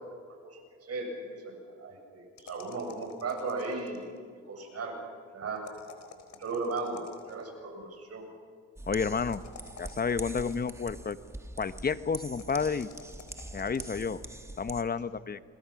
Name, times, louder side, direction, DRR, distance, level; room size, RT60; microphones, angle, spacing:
voice 1, 0.9-4.0 4.4-5.0 5.3-5.6 6.4-7.0 7.3-8.2, right 3 dB, 55° right, 2 dB, 7.8 m, -36 dB
sound 1, 2.4-4.2 5.6-7.5 9.0-10.9 12.2-14.1, left 6 dB, 65° left, 4.1 m, -51 dB
sound 2, 8.8-14.8, right 1 dB, 10° right, 1.6 m, -44 dB
voice 2, 8.9-9.4 9.8-11.2 11.6-12.9 13.5-14.2 14.6-15.4, left 5 dB, 30° left, 13 dB, 1.0 m, -30 dB
29.5 x 21.5 x 6.0 m, 2.1 s
cardioid pair, 90°, 30 cm